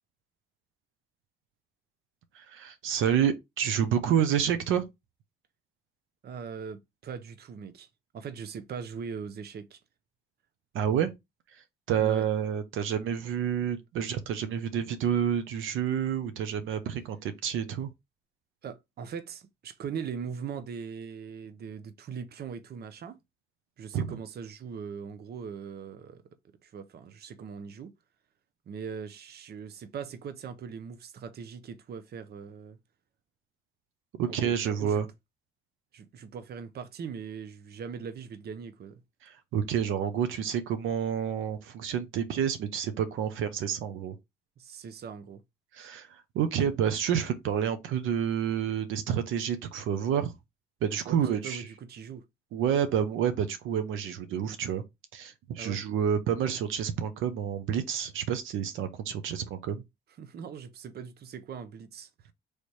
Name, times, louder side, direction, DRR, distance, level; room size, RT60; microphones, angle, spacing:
voice 1, 2.3-4.8 10.7-11.1 11.9-17.9 23.9-24.2 34.2-35.1 39.2-44.2 45.7-50.3 50.8-51.7 52.5-54.8 55.1-59.8, right 8 dB, 85° right, 0.8 m, -29 dB
voice 2, 6.2-7.9 8.1-9.8 12.0-12.3 18.6-23.2 23.8-26.2 26.6-27.9 28.7-32.8 34.3-35.0 35.9-39.0 44.6-45.4 51.1-52.2 55.6-55.8 60.2-62.3, right 6 dB, 55° right, 0.7 m, -40 dB
3.2 x 3.2 x 4.2 m
cardioid pair, 90°, 20 cm